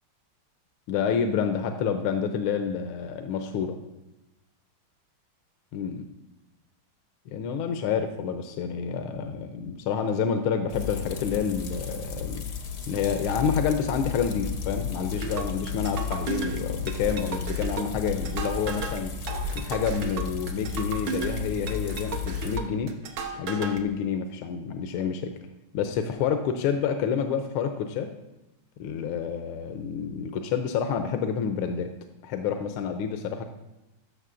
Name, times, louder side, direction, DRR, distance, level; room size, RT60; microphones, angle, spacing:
voice 1, 0.9-3.8 5.7-6.0 7.3-12.4 12.9-19.1 19.5-22.9 23.4-25.3 25.7-28.1 28.8-31.9 32.2-33.4, left 7 dB, 85° left, 6 dB, 1.5 m, -28 dB
sound 1, 10.7-22.6, left 6 dB, 60° left, 0.8 m, -34 dB
sound 2, 15.2-23.8, right 5 dB, 75° right, 1.6 m, -34 dB
13.5 x 6.5 x 2.5 m, 0.97 s
omnidirectional pair, 2.3 m